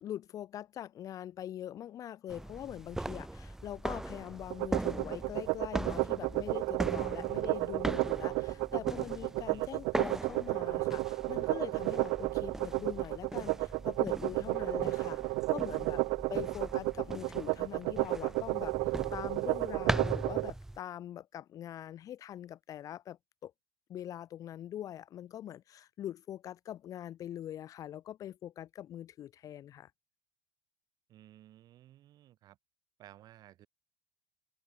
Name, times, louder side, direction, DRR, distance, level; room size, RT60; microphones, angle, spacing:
voice 1, 0.0-16.0 16.3-23.5 23.9-29.9, left 11 dB, 30° left, 1.3 m, -43 dB
sound 1, 2.3-20.8, right 1 dB, 5° right, 1.6 m, -40 dB
sound 2, 4.5-20.5, right 29 dB, 50° right, 0.8 m, -32 dB
voice 2, 31.1-32.6 33.0-33.7, right 13 dB, 35° right, 3.2 m, -56 dB
supercardioid pair, 155°, 12 cm